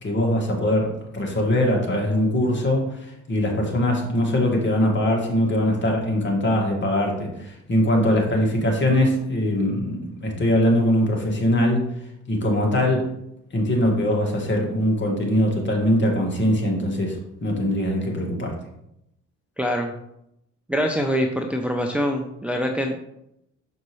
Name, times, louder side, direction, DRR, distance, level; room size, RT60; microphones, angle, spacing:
voice 1, 0.0-11.9 12.3-13.1 13.5-18.5, left 1 dB, 40° left, 0 dB, 1.9 m, -22 dB
voice 2, 19.6-19.9 20.7-23.0, equal, 5° right, 3 dB, 0.6 m, -24 dB
6.4 x 5.3 x 3.2 m, 0.80 s
cardioid pair, 90°, 30 cm